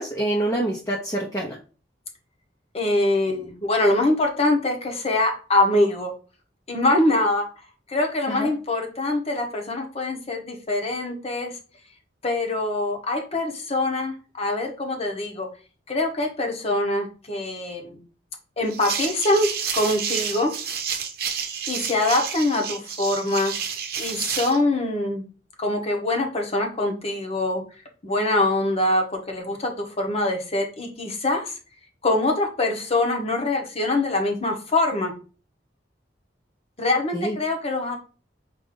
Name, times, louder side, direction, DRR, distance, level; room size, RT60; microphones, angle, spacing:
voice 1, 0.0-1.6 8.3-8.5 37.1-37.4, right 1 dB, 20° left, -2 dB, 0.7 m, -26 dB
voice 2, 2.7-6.1 6.7-7.5 7.9-11.5 12.2-15.5 15.9-18.0 18.6-19.5 19.7-20.5 21.7-23.5 24.0-25.2 25.6-27.6 28.0-31.6 32.0-35.1 36.8-38.0, left 2 dB, 35° left, 3 dB, 1.1 m, -24 dB
sound 1, 18.7-24.6, right 7 dB, 60° right, 0.8 m, -30 dB
5.0 x 2.7 x 3.7 m, 0.36 s
head